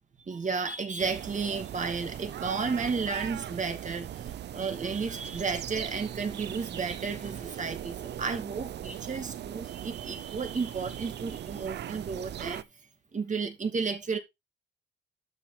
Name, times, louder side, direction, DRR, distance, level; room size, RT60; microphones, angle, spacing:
voice 1, 0.3-12.6 13.1-14.2, right 5 dB, 40° right, 2.5 m, -33 dB
sound 1, 1.0-12.6, right 11 dB, 60° right, 0.7 m, -39 dB
12.0 x 5.8 x 3.3 m
cardioid pair, 90°, 20 cm